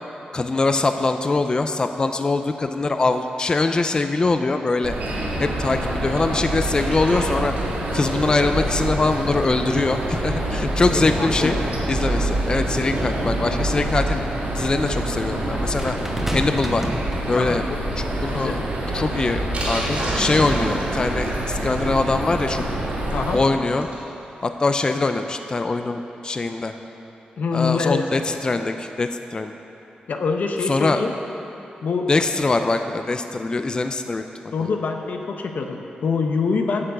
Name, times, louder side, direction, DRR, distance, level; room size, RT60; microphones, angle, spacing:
voice 1, 0.3-4.9 5.4-7.5 7.9-11.6 11.9-14.2 14.5-16.0 16.3-16.8 17.3-17.6 18.0-18.6 18.9-22.8 23.3-23.9 24.4-26.7 27.5-29.5 30.7-31.0 32.1-34.2 34.6-34.7, left 3 dB, 30° left, 7 dB, 0.4 m, -23 dB
sound 1, 4.8-23.4, right 1 dB, 85° right, 1.7 m, -26 dB
Sink (filling or washing), 6.1-24.1 24.5-24.6 24.7-24.8 25.2-25.3, right 1 dB, 50° right, 2.7 m, -36 dB
voice 2, 10.9-11.6 17.3-17.8 18.3-18.6 23.1-23.4 27.4-28.0 30.1-31.1 31.8-32.1 34.5-36.9, left 4 dB, 70° left, 3 dB, 0.7 m, -25 dB
sound 2, 15.8-17.7 18.6-18.8, right 1 dB, 10° right, 1.0 m, -30 dB
8.5 x 7.0 x 7.8 m, 3.0 s
wide cardioid pair, 125°, 3 cm